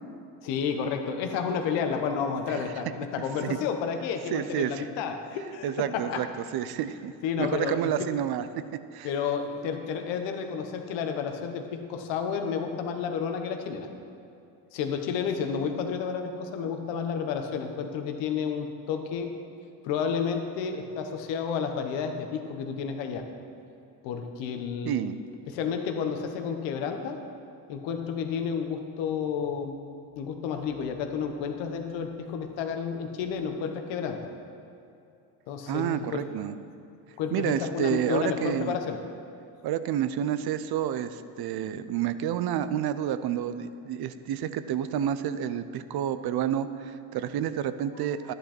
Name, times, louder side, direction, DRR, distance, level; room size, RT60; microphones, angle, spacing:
voice 1, 0.4-6.2 7.2-8.1 9.0-13.9 14.7-19.3 19.8-23.2 24.0-25.1 25.5-27.2 27.7-29.7 30.2-34.2 35.5-36.2 37.2-39.0, left 6 dB, 80° left, 5 dB, 1.2 m, -31 dB
voice 2, 4.3-4.9 5.6-6.3 6.5-7.1 7.4-8.4 8.9-9.1 16.6-16.7 24.9-25.2 35.7-36.6 37.3-38.8 39.6-48.3, right 10 dB, 60° right, 13 dB, 0.7 m, -29 dB
12.0 x 10.0 x 4.4 m, 2.7 s
supercardioid pair, 75°, 44 cm